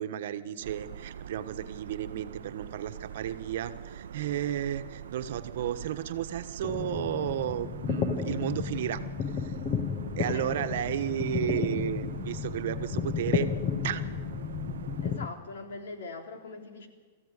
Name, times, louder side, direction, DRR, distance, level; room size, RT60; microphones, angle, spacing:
voice 1, 0.0-9.0 9.4-9.5 10.2-13.5 13.8-14.2, right 10 dB, 60° right, 9 dB, 1.2 m, -33 dB
sound 1, 0.6-15.2, right 9 dB, 90° right, 0.6 m, -43 dB
sound 2, 6.6-15.3, left 7 dB, 25° left, 1.0 m, -33 dB
voice 2, 10.2-10.7 11.2-11.3 15.0-16.9, left 3 dB, 85° left, 4 dB, 3.7 m, -42 dB
22.0 x 14.5 x 9.9 m, 1.4 s
supercardioid pair, 165°, 0 cm